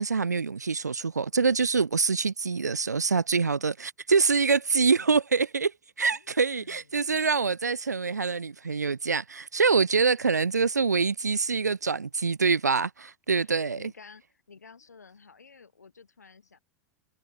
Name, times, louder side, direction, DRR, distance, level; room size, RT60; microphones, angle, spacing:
voice 1, 0.0-5.7 6.0-13.9, right 5 dB, 80° right, 0.4 m, -25 dB
voice 2, 6.1-7.2 9.9-10.2 13.4-16.6, left 5 dB, 75° left, 4.8 m, -53 dB
figure-of-eight pair, 90°, 9 cm